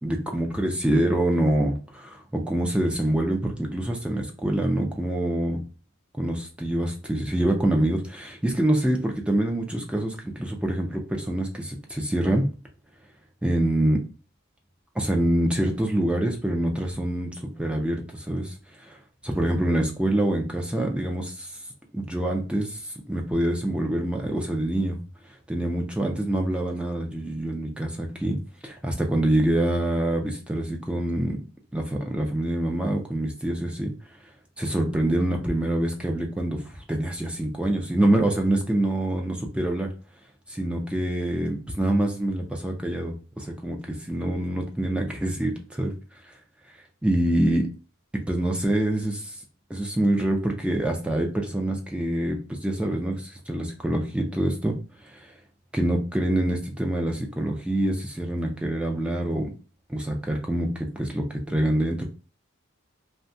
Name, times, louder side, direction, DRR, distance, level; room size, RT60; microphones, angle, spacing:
voice 1, 0.0-5.6 6.2-12.5 13.4-14.0 15.0-19.0 19.2-21.6 21.9-25.0 25.5-28.4 28.6-31.4 31.7-33.9 34.6-39.9 40.5-45.9 46.2-46.4 47.0-47.7 48.3-49.4 49.7-54.7 55.0-55.3 55.7-59.5 59.9-62.1, right 1 dB, 5° right, 2 dB, 0.3 m, -26 dB
2.6 x 2.2 x 2.5 m, 0.35 s
head